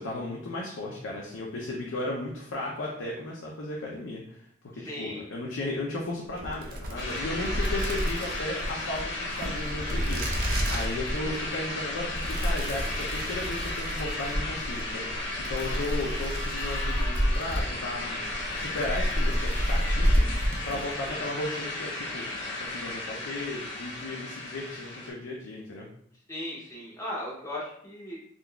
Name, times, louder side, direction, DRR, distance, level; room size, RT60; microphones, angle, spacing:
voice 1, 0.0-4.4 4.7-18.2 18.5-25.9, left 2 dB, 85° left, -2 dB, 0.5 m, -35 dB
voice 2, 4.7-5.2 21.1-21.2 26.3-28.2, left 1 dB, 15° left, -5 dB, 0.5 m, -37 dB
sound 1, 6.3-21.2, equal, 50° right, 0.5 m, -30 dB
sound 2, 7.0-25.1, left 2 dB, 65° left, 0.8 m, -35 dB
3.7 x 2.3 x 2.2 m, 0.67 s
head